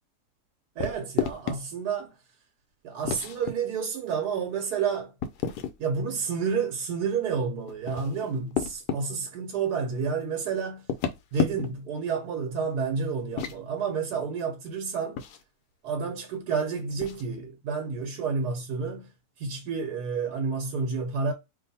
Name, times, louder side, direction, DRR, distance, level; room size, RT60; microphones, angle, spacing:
sound 1, 0.8-1.6 3.0-3.5 5.2-5.8 7.7-9.0 10.8-11.9 13.2-13.6 15.2-15.4 17.0-17.3, left 8 dB, 85° left, 1.2 m, -31 dB
voice 1, 0.8-2.1 2.8-5.1 5.8-10.9 11.3-15.2 15.8-19.1 19.4-21.3, right 5 dB, 80° right, 1.2 m, -30 dB
2.6 x 2.5 x 4.1 m
omnidirectional pair, 1.7 m